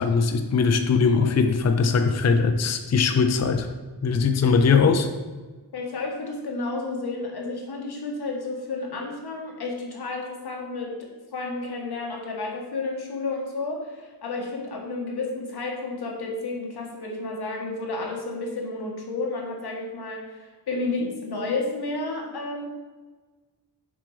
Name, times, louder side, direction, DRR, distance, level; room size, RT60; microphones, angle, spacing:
voice 1, 0.0-3.7 4.0-5.1, left 5 dB, 40° left, 6 dB, 0.6 m, -20 dB
voice 2, 5.7-22.7, left 3 dB, 65° left, -1 dB, 1.8 m, -31 dB
7.3 x 6.0 x 4.9 m, 1.3 s
wide cardioid pair, 155°, 41 cm